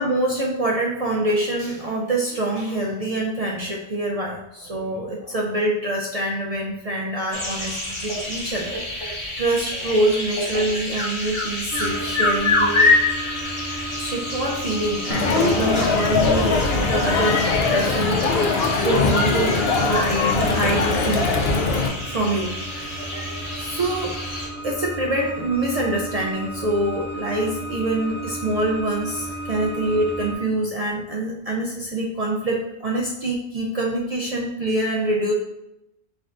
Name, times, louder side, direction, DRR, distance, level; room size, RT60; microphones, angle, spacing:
voice 1, 0.0-12.9 14.0-17.4 17.7-21.4 22.0-23.2 23.5-24.2 24.6-35.3, right 1 dB, 55° right, -2 dB, 0.4 m, -25 dB
sound 1, 7.3-24.5, left 2 dB, 30° left, 0.9 m, -27 dB
sound 2, 11.7-30.3, right 1 dB, 85° right, 0.9 m, -34 dB
Crowd, 15.1-21.9, left 4 dB, 65° left, 0.7 m, -21 dB
4.6 x 3.5 x 2.5 m, 0.88 s
omnidirectional pair, 1.2 m